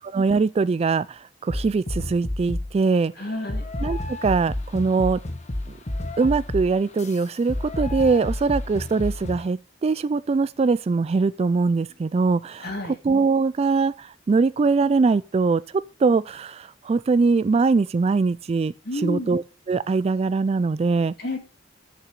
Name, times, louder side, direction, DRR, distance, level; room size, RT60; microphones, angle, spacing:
voice 1, 0.1-3.1 3.8-5.2 6.2-12.7 13.0-15.6 16.0-18.7 19.0-21.1, right 4 dB, 35° right, 0.3 m, -22 dB
sound 1, 1.5-2.8 3.5-9.5, left 1 dB, 40° left, 1.1 m, -30 dB
voice 2, 3.2-3.7 12.6-13.0 18.8-19.3 21.2-21.4, left 1 dB, 60° left, 2.6 m, -30 dB
6.8 x 6.1 x 6.5 m
head